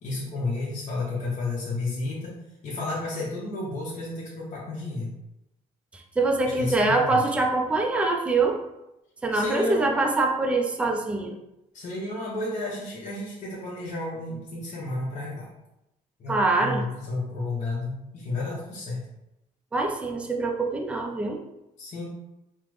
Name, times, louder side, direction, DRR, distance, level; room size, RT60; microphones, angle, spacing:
voice 1, 0.0-2.3 2.6-5.1 6.4-7.3 9.3-9.9 11.7-15.5 16.2-19.0 21.8-22.1, left 2 dB, 45° left, -6 dB, 0.8 m, -32 dB
voice 2, 5.9-8.6 9.2-11.4 16.3-16.8 19.7-21.4, right 2 dB, 5° right, 2 dB, 0.3 m, -24 dB
3.2 x 2.0 x 3.1 m, 0.90 s
cardioid pair, 110°, 17 cm